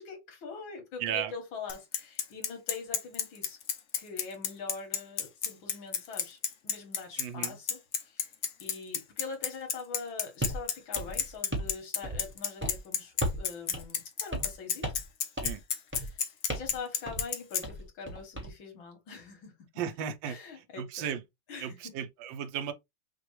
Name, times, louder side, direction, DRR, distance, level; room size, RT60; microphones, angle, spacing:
voice 1, 0.0-3.6 4.0-8.3 8.6-14.9 15.9-19.5 20.2-21.1 21.5-21.9, left 5 dB, 85° left, 2.2 m, -43 dB
voice 2, 1.0-1.3 7.2-7.5 15.4-15.6 19.8-20.4 20.8-21.2 21.6-22.7, right 9 dB, 75° right, 1.4 m, -35 dB
Bicycle, 1.7-17.6, left 7 dB, 60° left, 0.7 m, -30 dB
sound 1, 10.4-10.6 10.9-11.7 12.0-12.3 12.6-12.8 13.2-13.5 13.7-13.8 14.3-14.6 14.8-15.1 15.4-15.6 15.9-16.1 16.5-16.8 17.1-17.3 17.6-18.5, right 1 dB, 10° right, 0.7 m, -35 dB
6.0 x 2.4 x 3.1 m
omnidirectional pair, 2.1 m